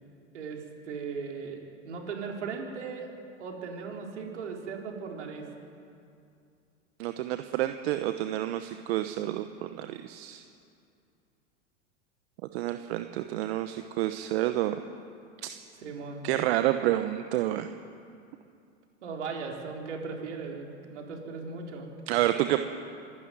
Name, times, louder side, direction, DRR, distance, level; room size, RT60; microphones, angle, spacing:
voice 1, 0.3-3.1 3.4-5.5 15.8-16.2 19.0-21.9, right 5 dB, 80° right, 1 dB, 4.2 m, -38 dB
voice 2, 7.0-10.4 12.5-14.8 15.4-15.5 16.2-17.7 22.1-22.6, right 14 dB, 60° right, 8 dB, 1.1 m, -29 dB
25.5 x 12.5 x 9.4 m, 2.5 s
hypercardioid pair, 95°, 35 cm